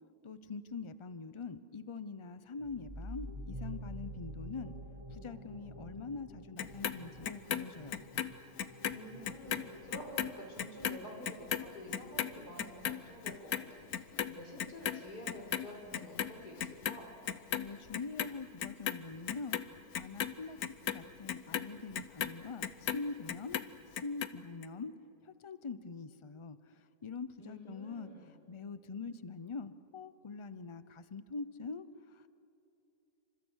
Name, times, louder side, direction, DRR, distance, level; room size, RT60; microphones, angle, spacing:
voice 1, 0.2-4.7 5.1-8.1 17.5-20.6 20.9-23.6 24.0-24.9 25.2-28.1 28.5-32.3, left 4 dB, 30° left, 13 dB, 0.5 m, -44 dB
sound 1, 2.6-12.0, equal, 20° right, 1.9 m, -48 dB
Clock, 6.6-9.0 9.2-15.7 15.9-17.0 17.3-18.3 18.6-23.0 23.3-24.3 24.6-24.7, left 9 dB, 75° left, 1.3 m, -36 dB
voice 2, 8.9-17.1 27.4-28.3, equal, 90° left, 0 dB, 5.7 m, -49 dB
28.5 x 26.0 x 6.4 m, 2.9 s
omnidirectional pair, 1.6 m